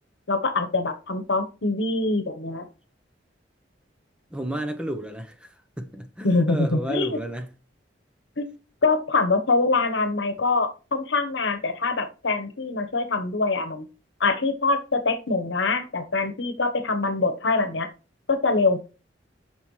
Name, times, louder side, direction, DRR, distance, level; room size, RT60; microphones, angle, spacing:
voice 1, 0.3-2.6 6.2-7.2 8.4-8.5 8.8-13.9 14.2-17.9 18.3-18.8, left 3 dB, 75° left, 1.1 m, -24 dB
voice 2, 4.3-7.5, right 1 dB, 5° right, 0.7 m, -32 dB
9.1 x 6.0 x 3.1 m
head